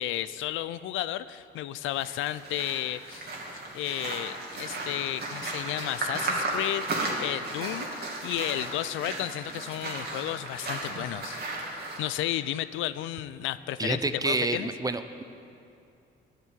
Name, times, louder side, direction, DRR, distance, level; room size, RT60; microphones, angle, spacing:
voice 1, 0.0-3.3 3.7-7.9 8.2-11.4 12.0-14.7, left 13 dB, 85° left, 15 dB, 0.4 m, -32 dB
sound 1, 1.9-12.0, right 2 dB, 55° right, 2.6 m, -35 dB
voice 2, 13.8-15.2, right 3 dB, 20° right, 10 dB, 0.7 m, -29 dB
10.5 x 9.3 x 8.3 m, 2.6 s
cardioid pair, 90°, 20 cm